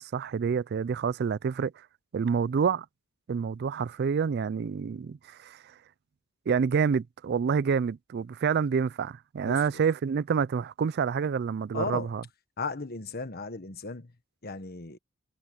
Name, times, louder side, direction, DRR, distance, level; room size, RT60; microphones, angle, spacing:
voice 1, 0.0-1.7 2.1-2.9 3.3-5.6 6.5-12.2, right 6 dB, 50° right, 0.3 m, -28 dB
voice 2, 11.7-12.1 12.6-14.1 14.4-15.0, left 3 dB, 50° left, 1.4 m, -35 dB
head